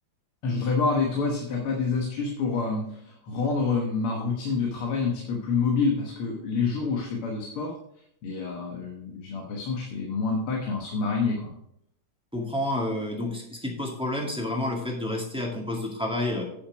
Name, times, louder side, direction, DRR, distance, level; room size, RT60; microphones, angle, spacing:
voice 1, 0.4-7.7 8.2-11.5, left 4 dB, 85° left, 0 dB, 2.3 m, -27 dB
voice 2, 12.3-16.4, left 1 dB, 5° right, -1 dB, 1.7 m, -29 dB
9.6 x 5.8 x 5.1 m, 0.75 s
omnidirectional pair, 2.4 m